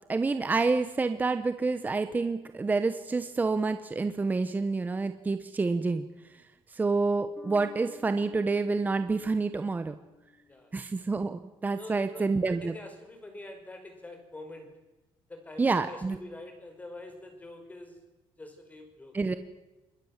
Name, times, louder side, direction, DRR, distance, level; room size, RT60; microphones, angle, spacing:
voice 1, 0.1-6.0 6.7-10.0 10.7-12.7 15.6-16.2 19.1-19.3, right 3 dB, 15° right, 9 dB, 1.1 m, -28 dB
Bass guitar, 7.4-10.9, left 4 dB, ahead, 4.0 m, -52 dB
voice 2, 11.7-14.7 15.3-18.0 18.4-19.2, left 2 dB, 15° left, 5 dB, 5.4 m, -45 dB
26.0 x 21.5 x 7.5 m, 1.0 s
cardioid pair, 165°, 10 cm